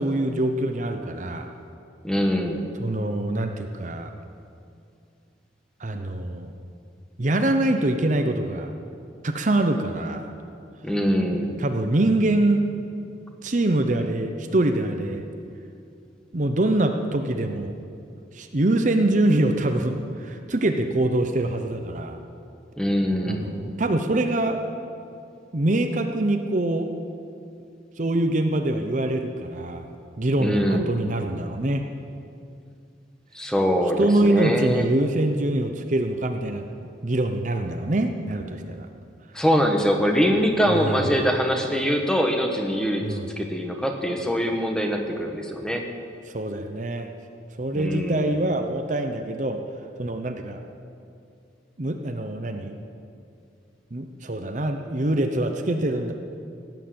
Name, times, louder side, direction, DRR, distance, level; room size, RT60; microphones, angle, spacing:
voice 1, 0.0-1.5 2.8-4.1 5.8-6.5 7.2-8.7 9.2-10.3 11.6-12.6 13.4-15.2 16.3-17.7 18.3-22.2 23.3-24.6 25.5-26.9 28.0-29.8 30.2-31.8 34.0-36.6 37.0-38.9 40.7-41.1 43.0-43.3 46.3-47.1 47.6-49.6 50.0-50.6 51.8-52.7 53.9-56.1, right 1 dB, 45° right, 6 dB, 0.8 m, -24 dB
voice 2, 2.0-2.6 10.8-11.5 22.8-23.5 30.4-30.9 33.3-34.8 39.3-45.8 47.7-48.3, equal, 5° left, 3 dB, 1.3 m, -23 dB
17.5 x 9.1 x 7.7 m, 2.5 s
head